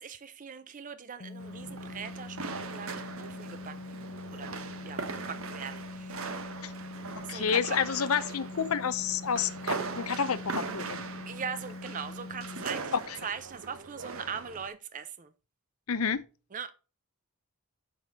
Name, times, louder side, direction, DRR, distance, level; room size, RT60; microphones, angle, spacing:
voice 1, 0.0-4.0 4.3-4.5 4.9-5.0 5.3-6.5 7.2-7.8 11.3-15.3 16.5-16.7, right 6 dB, 35° right, 0.5 m, -40 dB
sound 1, 1.2-12.6, left 3 dB, 35° left, 0.4 m, -43 dB
sound 2, 1.4-14.7, right 4 dB, 70° right, 0.9 m, -40 dB
voice 2, 7.2-11.0 12.9-13.2 15.9-16.2, left 7 dB, 80° left, 0.7 m, -30 dB
6.1 x 5.4 x 4.8 m
head